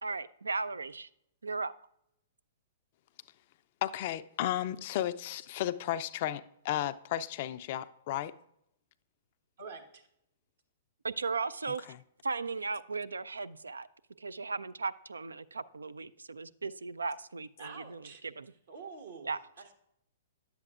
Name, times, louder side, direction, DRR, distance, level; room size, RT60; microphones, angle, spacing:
voice 1, 0.0-1.1 1.4-1.7 11.0-11.9 12.2-13.9 14.2-18.5 19.2-19.4, right 4 dB, 85° right, 0.3 m, -36 dB
voice 2, 3.8-8.3 11.9-12.0, left 12 dB, 50° left, 0.4 m, -34 dB
voice 3, 9.6-10.1 17.6-18.2 18.7-19.7, right 5 dB, 70° right, 1.2 m, -47 dB
10.0 x 7.7 x 2.4 m
hypercardioid pair, 115°, 0 cm